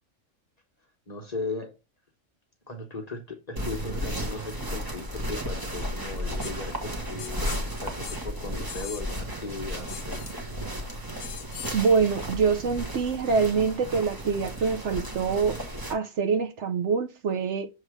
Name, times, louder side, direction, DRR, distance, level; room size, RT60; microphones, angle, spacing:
voice 1, 1.1-1.8 2.7-10.2, left 3 dB, 35° left, 1.0 m, -37 dB
sound 1, 3.6-15.9, equal, 15° right, 1.1 m, -34 dB
sound 2, 6.4-6.5 7.2-7.6 8.0-8.2 8.7-9.2 9.9-10.3 11.2-11.9, left 9 dB, 70° left, 1.0 m, -40 dB
voice 2, 11.7-15.6 15.9-17.7, right 5 dB, 60° right, 1.0 m, -25 dB
6.6 x 3.2 x 4.8 m
omnidirectional pair, 1.4 m